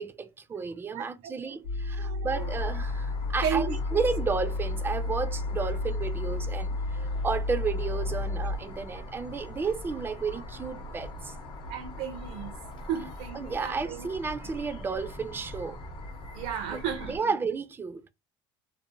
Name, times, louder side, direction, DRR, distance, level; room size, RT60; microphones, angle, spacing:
voice 1, 0.0-11.4 13.3-15.8 17.1-18.0, right 4 dB, 20° right, 0.3 m, -32 dB
voice 2, 0.9-1.3 1.9-2.5 3.4-3.8 7.0-7.2 8.9-9.4 10.3-10.4 11.7-12.6 12.8-14.1 16.3-17.3, right 8 dB, 75° right, 0.5 m, -35 dB
sound 1, 1.6-8.6, left 2 dB, 80° left, 0.8 m, -31 dB
sound 2, 2.3-17.2, left 1 dB, 50° left, 0.7 m, -42 dB
2.5 x 2.0 x 2.7 m
cardioid pair, 125°, 11 cm